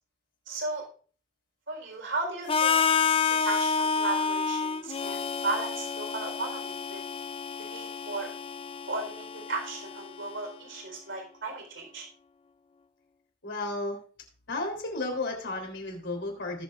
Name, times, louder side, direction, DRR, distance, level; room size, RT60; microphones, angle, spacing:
voice 1, 0.5-0.8 1.7-2.8 3.3-7.0 7.6-8.3 8.8-12.1, right 3 dB, 65° right, 1 dB, 4.1 m, -35 dB
Harmonica, 2.5-10.4, left 5 dB, 30° left, 0.4 m, -29 dB
voice 2, 13.4-14.0 14.5-16.6, left 2 dB, 60° left, 2 dB, 3.5 m, -33 dB
19.0 x 7.3 x 2.5 m, 0.42 s
head